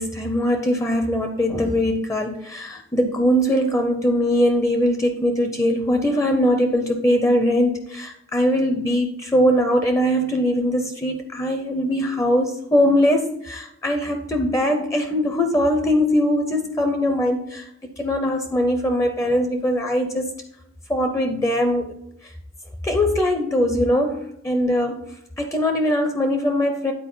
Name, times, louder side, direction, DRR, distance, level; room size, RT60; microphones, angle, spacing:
voice 1, 0.0-20.3 20.9-21.9 22.2-22.3 22.8-25.0 25.4-26.9, equal, 15° left, 5 dB, 0.5 m, -21 dB
9.2 x 4.3 x 3.9 m, 0.78 s
head